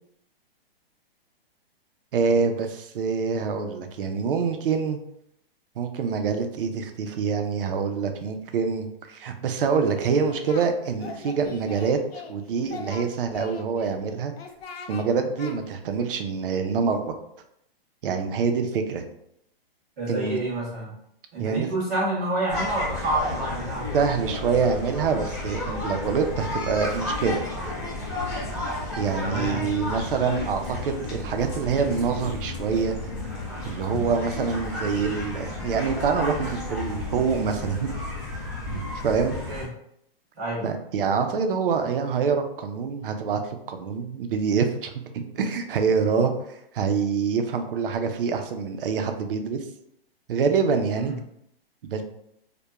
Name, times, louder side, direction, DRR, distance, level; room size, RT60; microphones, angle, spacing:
voice 1, 2.1-5.0 5.8-14.3 14.9-17.1 18.0-19.0 20.1-20.4 21.4-21.7 23.9-27.4 29.0-33.0 33.6-37.9 38.7-39.4 40.6-49.6 50.3-51.1 51.9-52.0, right 5 dB, 65° right, 6 dB, 0.4 m, -26 dB
Singing, 10.0-10.7 11.0-12.3 12.6-13.9 14.4-15.0 15.4-15.5, left 5 dB, 90° left, 0.5 m, -40 dB
voice 2, 20.0-20.9 21.3-23.9 29.2-29.7 39.5-39.7 40.4-40.7 51.0-51.1, right 1 dB, 20° right, -7 dB, 0.6 m, -28 dB
sound 1, 22.5-39.6, left 2 dB, 15° left, 1.0 m, -32 dB
sound 2, 24.0-36.1, left 2 dB, 40° left, 0.5 m, -47 dB
2.8 x 2.2 x 2.2 m, 0.74 s
hypercardioid pair, 175°, 30 cm